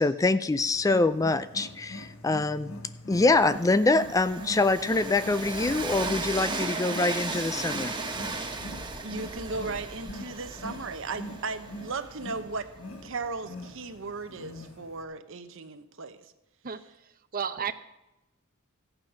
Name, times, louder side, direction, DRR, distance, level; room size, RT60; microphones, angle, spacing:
voice 1, 0.0-2.7 3.1-8.0, left 3 dB, 15° left, 13 dB, 0.4 m, -25 dB
Wild animals, 0.7-15.0, left 1 dB, 85° left, 1.6 m, -44 dB
Train, 3.1-13.0, right 3 dB, 20° right, 1.4 m, -36 dB
voice 2, 9.0-12.7 13.0-16.3, right 3 dB, 65° right, 9 dB, 1.0 m, -36 dB
voice 3, 16.6-17.7, right 7 dB, 45° right, 11 dB, 0.7 m, -34 dB
15.0 x 8.9 x 5.7 m, 0.95 s
head